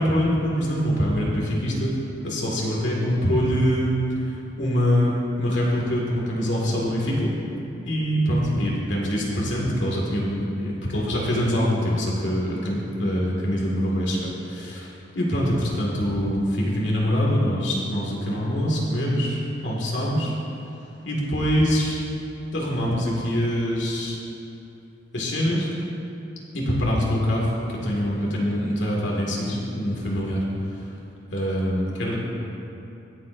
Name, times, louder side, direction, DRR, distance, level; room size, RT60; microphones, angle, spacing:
voice 1, 0.0-1.9 2.2-7.3 7.8-20.4 21.0-22.0 22.5-24.2 25.1-25.7 26.5-30.4 30.8-30.9 31.3-32.2, equal, 70° left, -4 dB, 2.1 m, -24 dB
19.0 x 7.4 x 2.6 m, 2.8 s
head